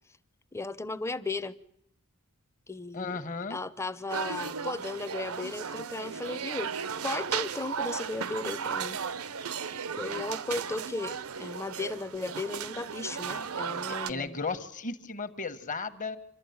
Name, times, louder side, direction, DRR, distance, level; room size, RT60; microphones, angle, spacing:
voice 1, 0.5-1.6 2.7-3.2 3.5-6.7 7.0-9.0 9.9-14.4, left 3 dB, 15° left, 0.7 m, -36 dB
voice 2, 2.9-3.6 13.9-16.2, left 4 dB, 40° left, 1.3 m, -35 dB
sound 1, 4.1-14.1, right 6 dB, 85° right, 0.8 m, -35 dB
27.0 x 12.0 x 9.5 m
head